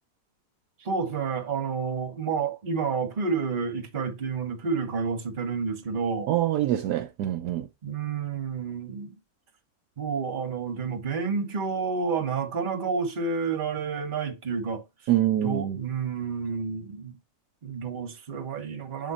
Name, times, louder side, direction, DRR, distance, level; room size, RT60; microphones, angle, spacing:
voice 1, 0.8-6.3 7.8-9.1 10.0-14.8 15.4-17.2 17.6-19.1, right 5 dB, 35° right, 1.1 m, -30 dB
voice 2, 6.3-7.7 15.1-15.8, right 12 dB, 70° right, 1.1 m, -25 dB
8.0 x 3.7 x 4.1 m
omnidirectional pair, 1.9 m